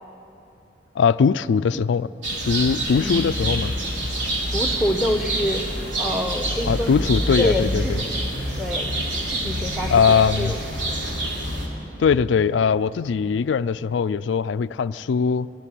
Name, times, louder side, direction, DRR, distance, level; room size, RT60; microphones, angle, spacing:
voice 1, 1.0-2.1 2.4-3.7 6.7-8.0 9.9-10.5 12.0-15.5, left 6 dB, 80° left, 13 dB, 0.4 m, -20 dB
sound 1, 2.2-11.7, right 1 dB, 85° right, 3.4 m, -27 dB
voice 2, 4.5-5.6 6.0-8.1 8.6-8.9 9.3-10.9, left 1 dB, 5° right, 6 dB, 1.1 m, -27 dB
17.5 x 16.0 x 10.0 m, 2.9 s
head